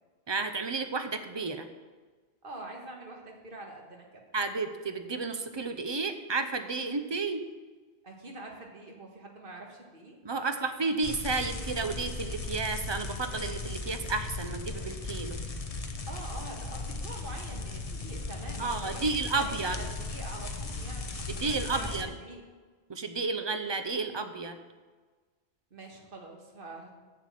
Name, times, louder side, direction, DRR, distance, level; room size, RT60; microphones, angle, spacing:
voice 1, 0.3-1.7 4.3-7.4 10.2-15.4 18.6-19.8 21.3-22.1 22.9-24.6, right 4 dB, 30° right, 8 dB, 0.6 m, -32 dB
voice 2, 2.4-4.2 8.0-10.2 16.1-19.0 19.4-21.9 22.2-22.4 25.7-26.9, right 2 dB, 55° right, 0 dB, 1.7 m, -45 dB
sound 1, 11.0-22.0, left 3 dB, 35° left, 0.8 m, -37 dB
7.3 x 6.6 x 7.5 m, 1.4 s
omnidirectional pair, 1.1 m